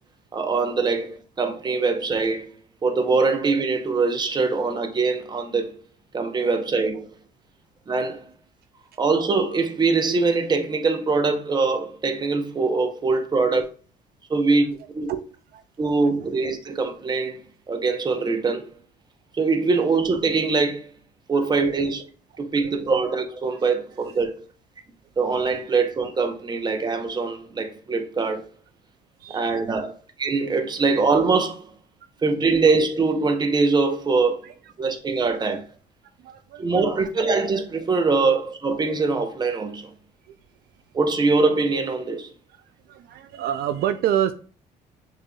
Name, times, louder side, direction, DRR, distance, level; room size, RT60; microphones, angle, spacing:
voice 1, 0.3-2.5 2.8-5.7 6.1-7.1 7.9-8.2 9.0-13.6 14.3-15.1 15.8-17.4 17.7-18.7 19.3-20.9 21.3-22.0 22.4-24.4 25.2-28.5 29.3-29.9 30.2-31.7 32.2-34.5 34.8-35.6 36.6-39.9 40.9-42.3, right 4 dB, 25° right, 0.8 m, -23 dB
voice 2, 36.2-37.1 40.3-40.4 42.9-44.3, right 11 dB, 70° right, 0.4 m, -27 dB
6.4 x 3.2 x 2.3 m
cardioid pair, 110°, 17 cm